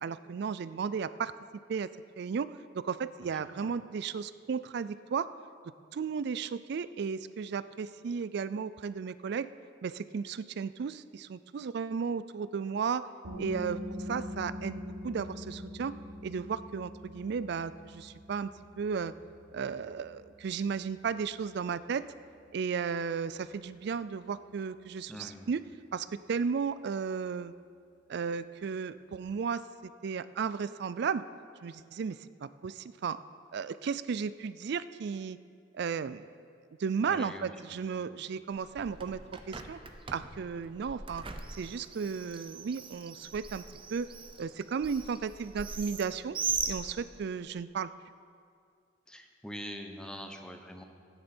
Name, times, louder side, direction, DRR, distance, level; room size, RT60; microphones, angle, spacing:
voice 1, 0.0-1.3 1.7-1.9 2.2-5.3 5.9-9.5 9.8-13.1 13.4-15.9 16.2-18.5 18.8-19.1 19.5-22.1 22.5-25.6 25.9-27.5 28.1-31.2 31.6-33.2 33.5-35.4 35.7-36.3 36.8-39.2 39.5-39.8 40.1-41.2 41.6-43.6 43.9-44.1 44.4-46.4 46.7-47.9, right 6 dB, 60° right, 15 dB, 0.4 m, -34 dB
voice 2, 3.2-3.7 25.1-25.5 37.1-37.5 38.0-38.1 49.1-50.8, equal, 5° left, 4 dB, 0.9 m, -44 dB
sound 1, 13.2-24.6, left 1 dB, 75° right, 1.4 m, -45 dB
Bird, 38.5-47.4, right 5 dB, 30° right, 0.7 m, -40 dB
15.0 x 9.6 x 4.4 m, 2.3 s
head